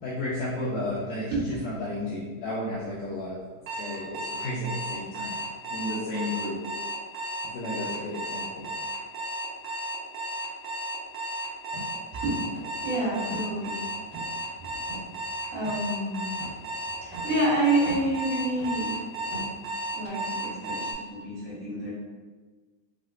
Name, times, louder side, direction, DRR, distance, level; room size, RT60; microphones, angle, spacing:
voice 1, 0.0-3.4 3.7-5.4 5.7-6.5 7.5-8.7, left 1 dB, 80° left, -9 dB, 1.9 m, -33 dB
voice 2, 1.3-1.8 12.2-12.4 12.8-13.8 15.5-16.2 17.0-19.0 19.9-21.9, right 1 dB, 70° right, -10 dB, 2.9 m, -28 dB
Alarm, 3.7-20.9, right 1 dB, 85° right, 2.6 m, -34 dB
sound 1, 11.7-11.9 12.5-12.9 13.2-13.5 14.1-14.4 14.9-15.1 15.6-16.0 16.4-16.7 17.1-17.4 17.8-18.2 18.6-18.9 19.3-19.6 20.0-20.1, right 1 dB, 50° right, 1.4 m, -41 dB
6.1 x 2.1 x 2.4 m, 1.3 s
omnidirectional pair, 4.4 m